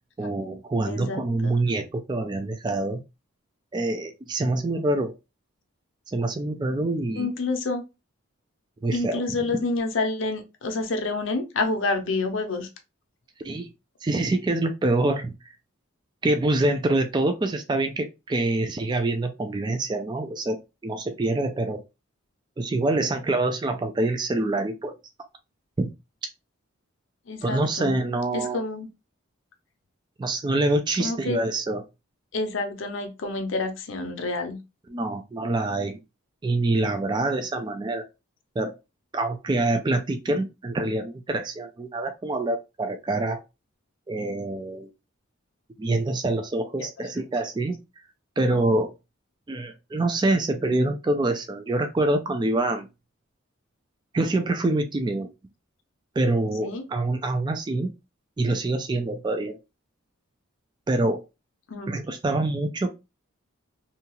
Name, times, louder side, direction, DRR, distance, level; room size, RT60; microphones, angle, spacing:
voice 1, 0.2-3.0 3.7-5.1 6.1-7.3 8.8-9.2 13.4-13.7 14.0-15.3 16.2-21.8 22.6-25.0 25.8-25.9 27.4-28.6 30.2-31.8 34.9-36.0 36.4-38.1 38.6-38.7 39.1-43.4 44.1-44.9 45.8-47.8 48.4-48.9 49.5-52.9 54.1-55.3 56.2-57.9 58.4-59.6 60.9-61.2 61.9-62.9, right 2 dB, 20° right, 0.3 m, -25 dB
voice 2, 0.8-1.6 7.2-7.8 8.9-12.7 27.3-27.9 28.3-28.9 31.0-31.4 32.3-34.6 46.8-46.9 56.6-56.8 61.7-61.9, left 3 dB, 65° left, 0.6 m, -28 dB
2.7 x 2.3 x 2.9 m
head